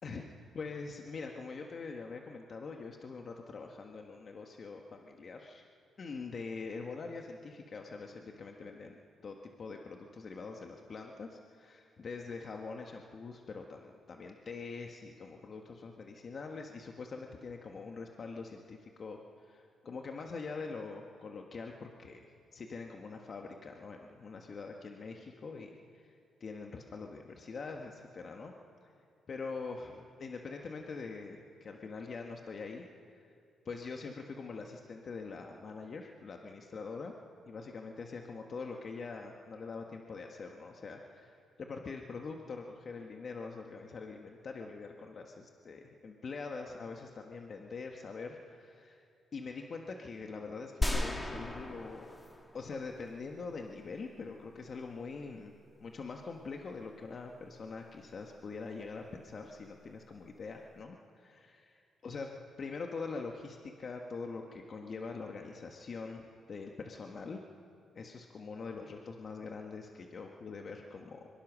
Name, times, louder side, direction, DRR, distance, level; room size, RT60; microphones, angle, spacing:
voice 1, 0.0-5.6 6.0-9.0 9.2-26.1 26.4-28.5 29.3-32.9 33.1-33.3 33.6-37.1 37.5-49.0 49.3-52.1 52.5-62.3 62.6-67.4 67.9-71.3, left 4 dB, 45° left, 2 dB, 1.5 m, -44 dB
sound 1, 50.8-53.1, left 1 dB, 15° left, 2.2 m, -35 dB
23.5 x 21.0 x 6.3 m, 2.4 s
cardioid pair, 90°, 0 cm